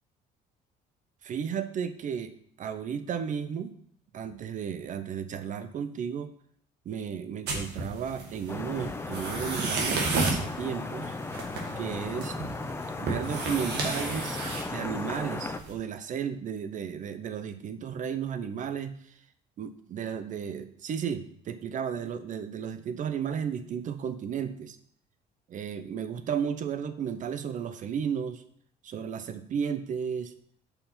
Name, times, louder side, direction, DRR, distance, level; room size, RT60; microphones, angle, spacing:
voice 1, 1.2-2.3 2.6-3.7 4.1-6.3 6.9-11.1 11.8-12.4 13.0-14.4 14.6-19.0 19.6-24.8 25.5-28.4 28.8-30.3, right 7 dB, 50° right, 10 dB, 0.6 m, -34 dB
sound 1, 7.5-15.7, right 3 dB, 75° right, 1.6 m, -33 dB
Vehicle horn car horn honking / Traffic noise roadway noise, 8.5-15.6, left 3 dB, 15° left, 0.4 m, -36 dB
5.6 x 4.2 x 5.8 m, 0.63 s
cardioid pair, 110°, 17 cm